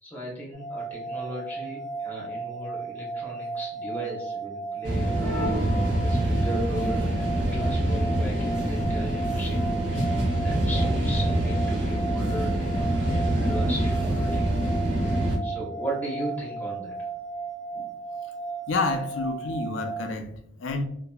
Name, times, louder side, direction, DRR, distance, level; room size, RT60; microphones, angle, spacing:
voice 1, 0.0-5.4 6.0-9.7 10.4-12.9 13.3-14.5 15.4-17.1, equal, 10° left, -3 dB, 0.9 m, -37 dB
sound 1, 0.5-20.1, right 4 dB, 50° left, 0.7 m, -35 dB
sound 2, 4.8-15.4, right 1 dB, 70° right, 1.1 m, -25 dB
voice 2, 18.7-20.8, left 3 dB, 85° left, 6 dB, 0.4 m, -29 dB
2.8 x 2.5 x 2.2 m, 0.72 s
head